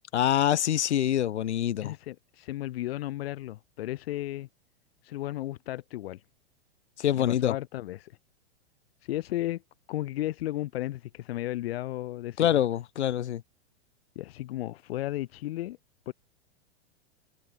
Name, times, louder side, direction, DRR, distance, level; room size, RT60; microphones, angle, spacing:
voice 1, 0.1-1.9 7.0-7.6 12.4-13.4, left 11 dB, 80° left, 2.1 m, -25 dB
voice 2, 1.8-4.5 5.0-6.2 7.1-8.2 9.0-9.6 9.9-12.6 14.1-15.8 16.1-16.2, left 15 dB, 60° left, 4.7 m, -34 dB
hypercardioid pair, 140°, 33 cm